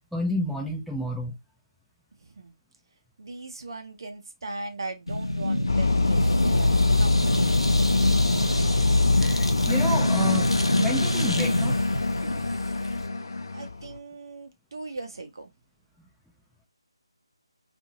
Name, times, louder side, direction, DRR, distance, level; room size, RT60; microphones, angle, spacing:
voice 1, 0.1-1.4 9.2-10.5 10.8-11.8, equal, ahead, 0.4 m, -30 dB
voice 2, 2.2-2.5 3.2-7.7 13.5-15.5, right 3 dB, 50° right, 0.8 m, -39 dB
sound 1, 5.1-13.1, left 1 dB, 90° left, 0.7 m, -25 dB
sound 2, 5.7-14.0, left 3 dB, 50° left, 0.6 m, -25 dB
2.6 x 2.6 x 2.9 m
figure-of-eight pair, 150°, 3 cm